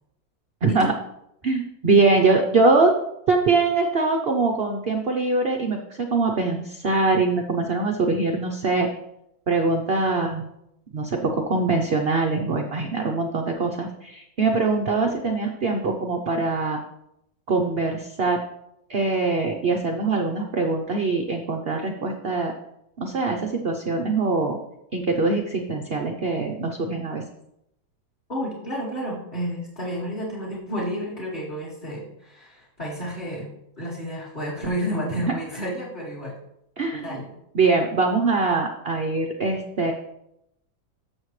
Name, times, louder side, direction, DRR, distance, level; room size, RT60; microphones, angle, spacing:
voice 1, 0.6-0.9 1.4-2.9 3.3-8.9 9.5-10.5 10.9-16.8 17.5-18.4 18.9-22.5 23.0-24.6 24.9-27.2 35.3-35.4 36.8-37.2 37.5-39.9, right 3 dB, 55° right, 3 dB, 0.6 m, -23 dB
voice 2, 28.3-33.5 33.8-36.3 37.0-37.3, equal, 25° left, -6 dB, 2.2 m, -31 dB
14.0 x 6.5 x 3.2 m, 0.81 s
omnidirectional pair, 2.1 m